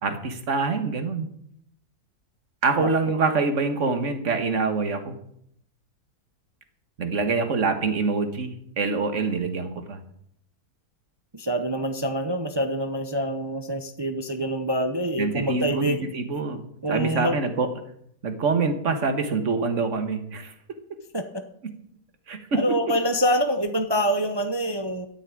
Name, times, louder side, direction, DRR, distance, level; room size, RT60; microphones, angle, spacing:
voice 1, 0.0-1.3 2.6-5.2 7.0-10.0 15.2-16.6 16.9-17.8 18.2-20.5 22.3-23.0, right 4 dB, 50° right, 8 dB, 1.8 m, -25 dB
voice 2, 11.3-16.1 16.8-17.4 21.1-21.3 22.5-25.1, equal, 25° right, 7 dB, 0.6 m, -26 dB
13.0 x 7.4 x 8.8 m, 0.69 s
omnidirectional pair, 1.7 m